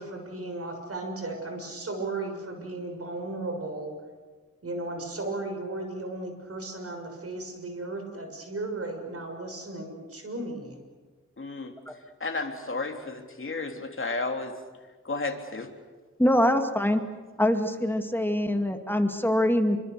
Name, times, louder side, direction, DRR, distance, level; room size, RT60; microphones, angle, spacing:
voice 1, 0.0-3.9 4.6-10.8, right 2 dB, 50° right, 4 dB, 6.5 m, -35 dB
voice 2, 11.4-11.7 12.2-14.6 15.0-15.7, left 3 dB, 45° left, 3 dB, 3.4 m, -32 dB
voice 3, 16.2-17.0 17.4-19.8, left 1 dB, 5° left, 5 dB, 2.3 m, -24 dB
27.0 x 25.0 x 6.8 m, 1.4 s
wide cardioid pair, 80°, 29 cm